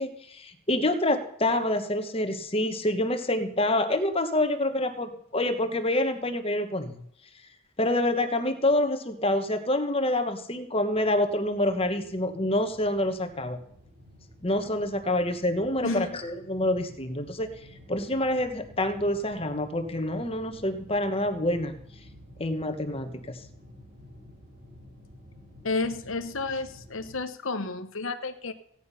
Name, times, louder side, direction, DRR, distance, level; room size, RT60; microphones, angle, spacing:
voice 1, 0.0-7.0 7.8-13.6 14.4-17.5 17.9-21.8 22.4-23.4, left 1 dB, 25° left, 7 dB, 1.2 m, -27 dB
sound 1, 10.7-27.2, left 1 dB, 80° right, 6.0 m, -51 dB
voice 2, 15.8-16.2 25.6-28.5, left 3 dB, 70° left, 8 dB, 1.1 m, -31 dB
16.5 x 10.0 x 5.6 m, 0.70 s
head